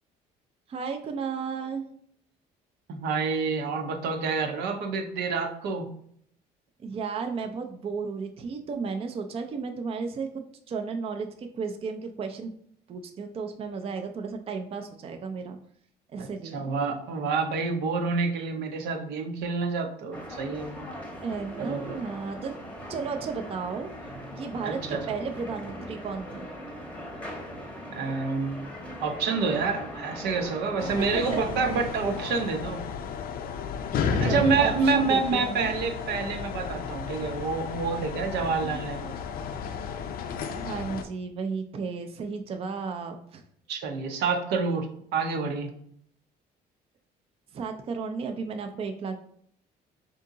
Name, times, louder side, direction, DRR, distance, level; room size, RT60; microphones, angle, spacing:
voice 1, 0.7-1.9 6.8-12.5 12.9-15.6 16.1-16.6 21.2-22.5 22.9-23.9 24.4-24.8 25.1-26.5 30.8-31.4 31.7-31.9 34.2-35.8 38.6-38.8 40.5-43.4 47.5-49.2, right 5 dB, 35° right, 5 dB, 0.4 m, -34 dB
voice 2, 2.9-5.9 16.2-20.9 21.6-22.0 24.6-25.1 27.9-28.7 29.0-32.8 34.1-39.1 43.7-45.7, right 4 dB, 80° right, 4 dB, 0.7 m, -28 dB
sound 1, 20.1-32.5, equal, 10° left, 0.8 m, -40 dB
sound 2, 30.8-41.0, left 6 dB, 60° left, 0.5 m, -33 dB
3.5 x 2.8 x 3.8 m, 0.65 s
cardioid pair, 110°, 17 cm